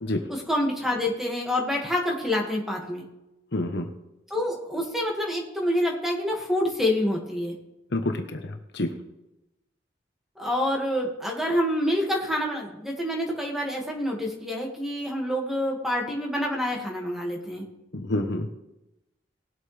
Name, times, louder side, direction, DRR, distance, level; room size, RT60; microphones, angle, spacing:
voice 1, 0.3-3.0 4.3-7.5 10.4-17.6, left 1 dB, ahead, -1 dB, 2.1 m, -27 dB
voice 2, 3.5-3.9 7.9-8.9 17.9-18.5, left 1 dB, 65° left, 6 dB, 1.1 m, -28 dB
19.5 x 8.2 x 3.5 m, 0.95 s
head